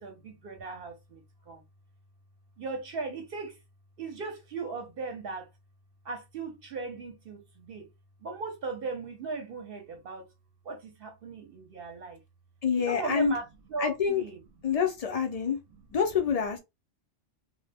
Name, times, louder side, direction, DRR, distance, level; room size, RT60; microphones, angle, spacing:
voice 1, 0.0-1.6 2.6-3.6 4.0-5.5 6.0-7.9 8.2-10.3 10.6-12.2 12.9-13.4 13.7-14.4, right 4 dB, 60° right, 0.7 m, -37 dB
voice 2, 12.6-13.3 13.8-14.2 14.6-15.6 15.9-16.6, left 7 dB, 80° left, 0.3 m, -27 dB
2.1 x 2.0 x 3.3 m
omnidirectional pair, 1.2 m